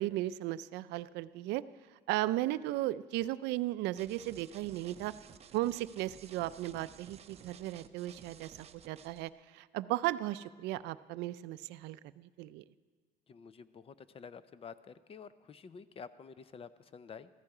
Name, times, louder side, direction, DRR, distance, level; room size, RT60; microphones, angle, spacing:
voice 1, 0.0-1.6 2.1-5.1 5.5-12.6, right 16 dB, 90° right, 15 dB, 0.4 m, -36 dB
sound 1, 4.0-9.3, right 8 dB, 40° right, 0.6 m, -55 dB
voice 2, 13.3-17.3, left 6 dB, 35° left, 14 dB, 0.6 m, -50 dB
15.0 x 13.5 x 4.9 m, 1.5 s
cardioid pair, 110°, 17 cm